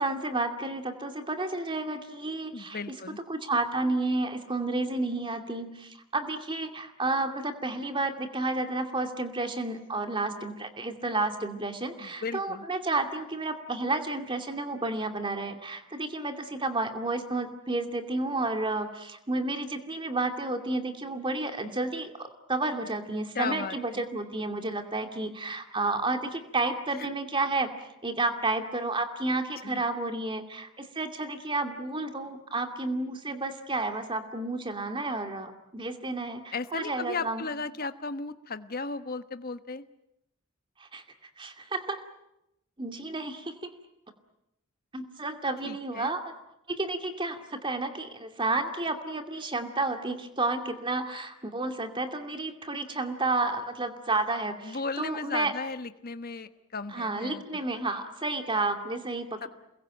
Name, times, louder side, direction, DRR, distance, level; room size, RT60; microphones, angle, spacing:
voice 1, 0.0-2.8 3.3-27.7 28.0-37.4 40.8-41.0 41.4-42.0 42.8-43.7 44.9-46.3 46.7-55.5 56.9-59.5, right 2 dB, 25° right, 6 dB, 2.5 m, -31 dB
voice 2, 2.5-3.2 12.0-12.6 23.3-24.0 29.6-30.0 36.5-39.8 45.7-46.1 54.6-57.9 59.4-59.5, left 4 dB, 45° left, 10 dB, 1.2 m, -36 dB
28.5 x 21.5 x 9.1 m, 0.86 s
head